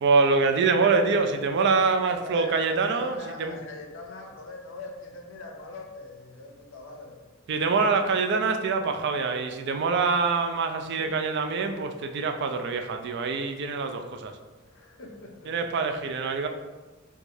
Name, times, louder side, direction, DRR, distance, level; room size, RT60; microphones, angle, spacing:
voice 1, 0.0-3.6 7.5-14.3 15.5-16.5, right 4 dB, 55° right, 6 dB, 0.4 m, -25 dB
voice 2, 1.8-7.2 7.9-8.0 11.0-11.2 14.6-15.5, left 2 dB, 65° left, 2 dB, 0.5 m, -42 dB
4.6 x 2.3 x 2.6 m, 1.2 s
head